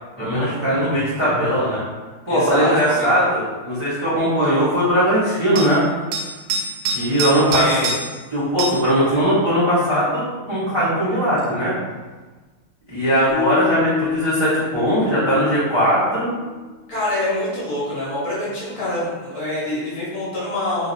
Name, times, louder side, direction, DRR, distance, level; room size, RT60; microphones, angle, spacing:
voice 1, 0.2-1.8 2.2-5.8 6.9-7.8 8.3-11.7 12.9-16.3, equal, 40° right, -12 dB, 0.4 m, -19 dB
voice 2, 2.3-3.1 7.2-7.9 16.9-20.9, left 1 dB, 55° left, -8 dB, 1.3 m, -25 dB
sound 1, 2.7-2.9 5.6-5.7 6.1-8.2 8.6-8.9 11.4-11.5, right 3 dB, 85° right, 1.5 m, -26 dB
sound 2, 13.3-16.5, left 8 dB, 85° left, 1.6 m, -28 dB
3.8 x 2.6 x 2.6 m, 1.3 s
omnidirectional pair, 2.3 m